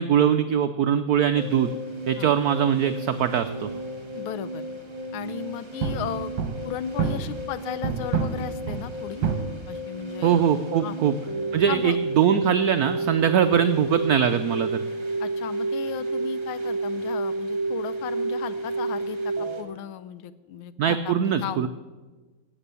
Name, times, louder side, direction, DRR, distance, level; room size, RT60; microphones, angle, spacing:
voice 1, 0.0-1.7 2.1-3.7 10.2-11.1 11.5-14.8 20.8-21.7, right 8 dB, 90° right, 9 dB, 0.8 m, -22 dB
sound 1, 1.4-19.6, right 2 dB, 15° right, 1.0 m, -31 dB
voice 2, 4.1-4.7 5.1-9.2 9.7-10.5 10.8-11.0 11.7-12.0 15.2-21.7, left 10 dB, 85° left, 15 dB, 1.5 m, -36 dB
sound 2, 5.1-5.3 5.8-7.5 7.8-9.4, right 6 dB, 65° right, 1.9 m, -28 dB
16.0 x 8.1 x 6.9 m, 1.3 s
omnidirectional pair, 2.3 m